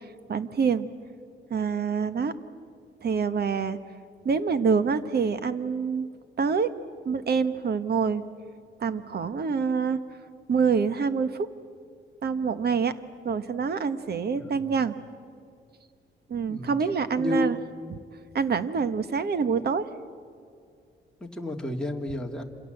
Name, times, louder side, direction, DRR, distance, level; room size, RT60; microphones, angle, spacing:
voice 1, 0.3-0.9 1.5-2.3 3.0-3.8 4.2-6.1 6.4-6.7 7.0-8.2 8.8-10.0 10.5-11.5 12.2-13.0 13.2-14.9 16.3-17.6 18.3-19.9, right 5 dB, 50° right, 12 dB, 1.2 m, -26 dB
voice 2, 14.3-14.7 16.5-16.7 17.2-17.5 21.2-22.4, left 1 dB, 5° left, 0 dB, 2.2 m, -31 dB
27.5 x 26.5 x 7.9 m, 2.3 s
wide cardioid pair, 135°, 20 cm